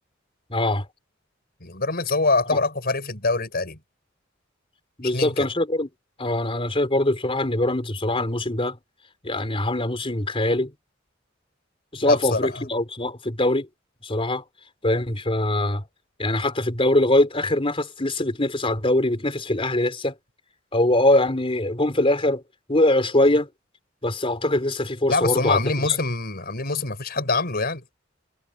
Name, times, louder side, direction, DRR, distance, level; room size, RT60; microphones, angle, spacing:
voice 1, 0.5-0.9 2.5-2.6 5.0-5.9 6.2-8.8 9.2-10.7 11.9-13.7 14.0-14.4 14.8-15.9 16.2-20.1 20.7-22.4 22.7-23.5 24.0-26.0, left 1 dB, 30° left, 4.0 m, -22 dB
voice 2, 1.6-3.8 5.1-5.5 12.0-12.7 25.1-27.8, left 3 dB, 50° left, 5.3 m, -24 dB
head